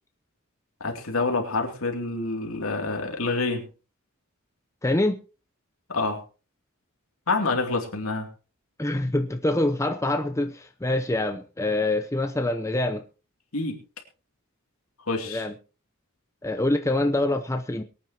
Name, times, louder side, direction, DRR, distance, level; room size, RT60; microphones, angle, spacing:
voice 1, 0.8-3.7 5.9-6.2 7.3-8.3 13.5-13.8 15.1-15.5, left 3 dB, 75° left, 2 dB, 2.9 m, -27 dB
voice 2, 4.8-5.2 8.8-13.0 15.3-15.5 16.4-17.8, left 1 dB, 15° left, 6 dB, 0.7 m, -25 dB
23.0 x 9.0 x 3.0 m, 0.34 s
head